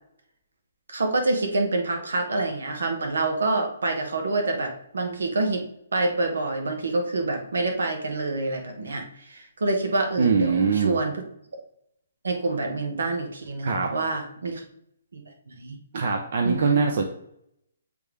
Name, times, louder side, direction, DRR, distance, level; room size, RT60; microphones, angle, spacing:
voice 1, 0.9-5.6 5.9-11.1 12.2-14.6 15.1-15.8 16.4-16.8, right 2 dB, 85° right, 4 dB, 1.4 m, -27 dB
voice 2, 10.2-11.0 13.6-13.9 15.9-17.0, right 5 dB, 55° right, 3 dB, 0.8 m, -22 dB
8.2 x 3.4 x 3.4 m, 0.74 s
hypercardioid pair, 155°, 0 cm